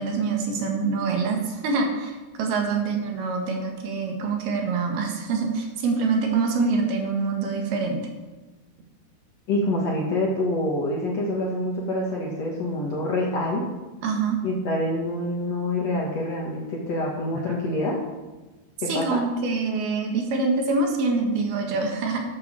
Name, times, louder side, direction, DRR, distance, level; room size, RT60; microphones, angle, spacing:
voice 1, 0.0-8.0 14.0-14.4 17.3-17.4 18.9-22.2, right 4 dB, 70° right, 3 dB, 3.3 m, -25 dB
voice 2, 9.5-13.7 14.4-18.0 18.8-19.2, left 1 dB, 55° left, -2 dB, 1.9 m, -26 dB
12.0 x 7.6 x 7.3 m, 1.2 s
omnidirectional pair, 4.9 m